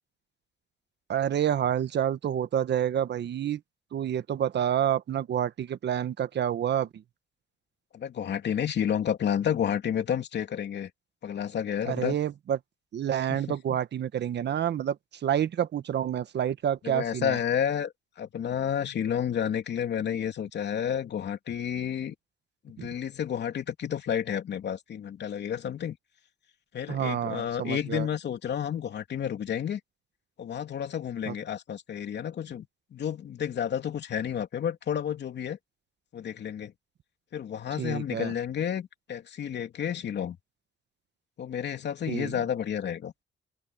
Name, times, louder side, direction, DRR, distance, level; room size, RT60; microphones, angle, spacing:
voice 1, 1.1-3.6 3.9-7.0 11.9-12.6 12.9-17.4 22.8-22.9 26.9-28.1 31.3-31.4 37.8-38.3 42.1-42.4, right 10 dB, 60° right, 1.4 m, -28 dB
voice 2, 7.9-10.9 11.2-12.2 13.3-13.8 16.8-17.9 18.2-22.1 22.6-26.0 26.7-29.8 30.4-32.7 32.9-35.6 36.1-36.7 37.3-40.4 41.4-43.1, left 9 dB, 60° left, 3.1 m, -31 dB
open air
cardioid pair, 90°, 20 cm